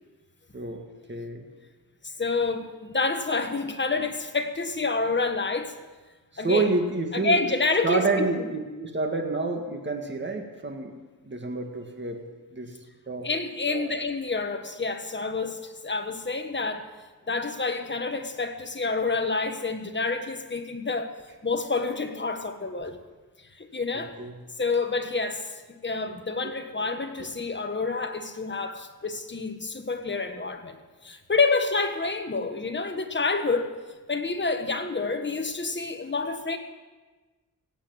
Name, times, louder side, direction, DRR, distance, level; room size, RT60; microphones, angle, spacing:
voice 1, 1.1-1.5 6.3-7.4 7.8-11.0 11.2-12.2 12.5-12.7 13.1-13.3 13.7-13.9 24.2-24.4 26.4-26.6 27.2-27.3, right 3 dB, 30° right, 3 dB, 2.0 m, -28 dB
voice 2, 2.0-5.7 6.4-6.7 7.1-8.5 13.2-16.8 17.3-21.1 21.4-23.0 23.6-24.1 24.6-25.4 25.8-30.8 31.0-33.7 34.1-36.6, left 3 dB, 30° left, 6 dB, 1.5 m, -28 dB
17.0 x 8.3 x 7.8 m, 1.3 s
wide cardioid pair, 95°, 36 cm